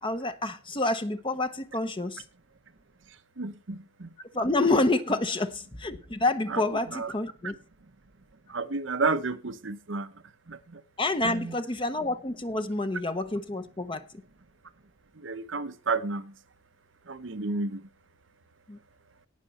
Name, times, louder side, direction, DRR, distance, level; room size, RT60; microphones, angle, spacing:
voice 1, 0.0-2.2 4.3-7.5 11.0-14.0 18.7-18.8, left 2 dB, 25° left, 0.9 m, -28 dB
voice 2, 3.4-4.1 6.5-6.6 6.9-7.1 8.5-10.1 10.5-10.8 11.2-11.5 15.2-16.4 17.1-17.9, right 3 dB, 75° right, 1.0 m, -31 dB
18.0 x 6.1 x 4.3 m
head